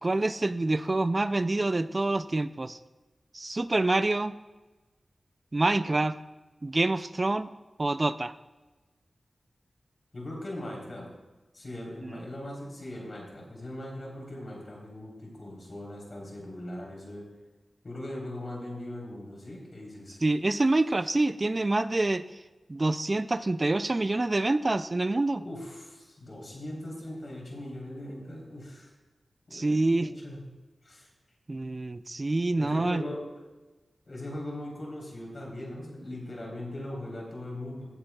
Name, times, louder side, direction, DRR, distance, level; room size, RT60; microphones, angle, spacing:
voice 1, 0.0-2.8 3.3-4.4 5.5-6.2 6.6-7.5 7.8-8.3 12.0-12.2 20.2-22.2 22.7-25.4 29.5-30.1 31.5-33.0, right 2 dB, 35° right, 13 dB, 0.4 m, -26 dB
voice 2, 10.1-11.1 11.5-17.2 17.8-20.2 25.4-28.9 29.5-30.4 30.8-31.1 32.6-33.2 34.1-37.9, left 1 dB, 55° left, -2 dB, 3.4 m, -40 dB
16.0 x 9.2 x 2.3 m, 1.2 s
wide cardioid pair, 80°, 0 cm